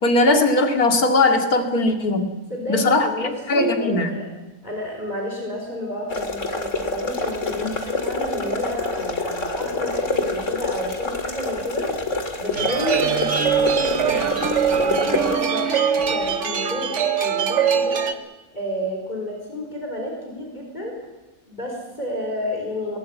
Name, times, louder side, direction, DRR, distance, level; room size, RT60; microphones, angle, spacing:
voice 1, 0.0-2.3 2.7-3.1 3.5-4.1 7.6-7.7, left 2 dB, 85° left, 5 dB, 2.7 m, -19 dB
voice 2, 2.5-4.3 4.6-12.0 12.4-14.3 14.8-18.0 18.5-20.9 21.5-23.0, equal, 30° left, 0 dB, 4.6 m, -30 dB
sound 1, 6.1-15.4, left 3 dB, 55° left, 2.7 m, -27 dB
sound 2, 12.5-18.1, right 7 dB, 55° right, 1.5 m, -22 dB
22.5 x 18.5 x 8.4 m, 1.1 s
omnidirectional pair, 1.5 m